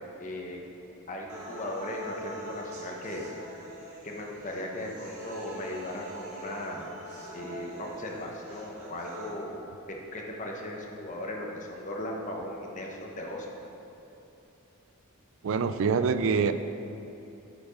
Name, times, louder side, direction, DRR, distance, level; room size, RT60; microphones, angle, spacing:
voice 1, 0.2-0.6 1.1-3.3 4.0-6.9 7.3-9.6 9.9-13.5, left 1 dB, 35° left, 0 dB, 0.9 m, -37 dB
sound 1, 1.3-9.3, right 1 dB, 80° right, 1.7 m, -43 dB
voice 2, 15.4-16.5, right 5 dB, 60° right, 11 dB, 0.4 m, -25 dB
8.5 x 5.1 x 5.1 m, 2.9 s
head